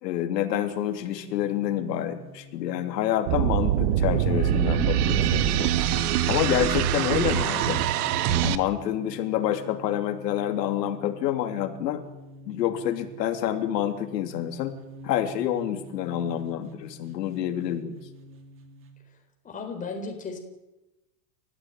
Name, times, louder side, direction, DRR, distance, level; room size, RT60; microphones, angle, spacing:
voice 1, 0.0-5.7 6.2-7.8 8.4-12.0 12.5-14.7 15.0-18.0, left 11 dB, 85° left, 6 dB, 3.2 m, -28 dB
sound 1, 0.7-19.0, left 1 dB, 25° right, 2.7 m, -47 dB
sound 2, 3.3-8.6, right 10 dB, 65° right, 1.7 m, -24 dB
voice 2, 19.4-20.4, left 4 dB, 15° left, 3 dB, 4.2 m, -35 dB
29.5 x 15.0 x 9.1 m, 1.0 s
supercardioid pair, 160°, 48 cm